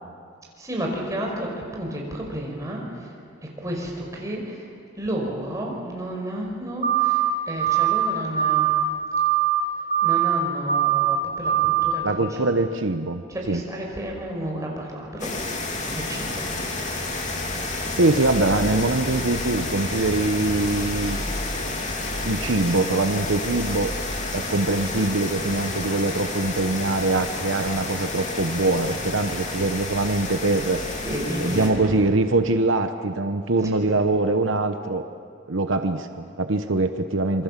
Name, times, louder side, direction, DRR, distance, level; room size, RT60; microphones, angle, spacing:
voice 1, 0.6-8.8 10.0-12.5 13.3-15.7 15.9-16.7 31.0-32.0, right 1 dB, 15° right, -1 dB, 5.4 m, -32 dB
sound 1, 6.8-7.3 7.6-8.1 8.4-8.8 9.1-9.6 9.9-10.4 10.7-11.2 11.4-11.9, right 12 dB, 35° right, 1.5 m, -21 dB
voice 2, 12.0-13.6 18.0-21.2 22.2-23.9 24.3-30.8 31.4-35.0 35.5-37.4, right 2 dB, 80° right, 7 dB, 1.1 m, -23 dB
sound 2, 15.2-31.7, left 2 dB, 35° left, 3.0 m, -30 dB
27.0 x 24.0 x 7.5 m, 2.2 s
head